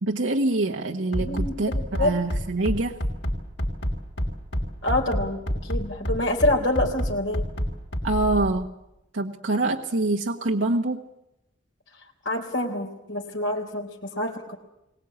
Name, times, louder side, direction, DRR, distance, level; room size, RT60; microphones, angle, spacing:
voice 1, 0.0-3.0 8.0-8.7 9.1-11.0, right 2 dB, 80° right, 1 dB, 1.4 m, -25 dB
Bass drum, 1.1-8.5, equal, 65° left, 3.8 m, -27 dB
voice 2, 1.2-2.1 4.8-7.5 12.3-14.6, left 1 dB, 80° left, 1 dB, 3.7 m, -27 dB
23.0 x 19.0 x 8.6 m, 0.88 s
head